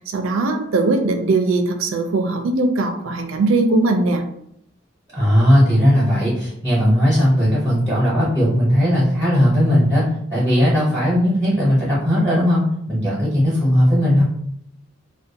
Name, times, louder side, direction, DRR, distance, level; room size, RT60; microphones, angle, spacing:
voice 1, 0.1-4.2, right 2 dB, 85° right, 5 dB, 0.4 m, -20 dB
voice 2, 5.1-10.0 10.3-14.2, equal, 10° right, -7 dB, 0.7 m, -17 dB
2.4 x 2.2 x 2.6 m, 0.73 s
head